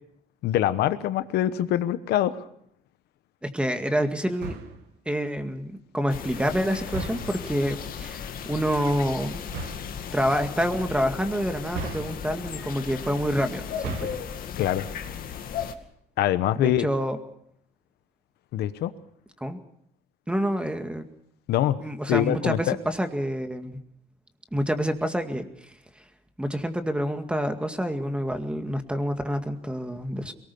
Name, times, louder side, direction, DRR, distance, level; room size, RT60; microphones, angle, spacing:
voice 1, 0.4-2.4 14.6-14.8 16.2-16.9 18.5-18.9 21.5-21.8 22.1-22.8, left 12 dB, 75° left, 12 dB, 1.1 m, -24 dB
voice 2, 3.4-4.6 5.1-9.4 10.1-14.1 16.6-17.2 19.4-19.6 20.3-21.0 21.8-23.8 24.5-25.4 26.4-30.3, equal, 5° right, 7 dB, 2.1 m, -27 dB
sound 1, 4.3-4.9 6.9-7.5 9.4-10.0 11.7-12.5 13.7-14.4, right 4 dB, 85° right, 2.3 m, -36 dB
sound 2, 6.1-15.7, left 8 dB, 60° left, 2.2 m, -36 dB
22.5 x 19.0 x 6.9 m, 0.71 s
cardioid pair, 110°, 17 cm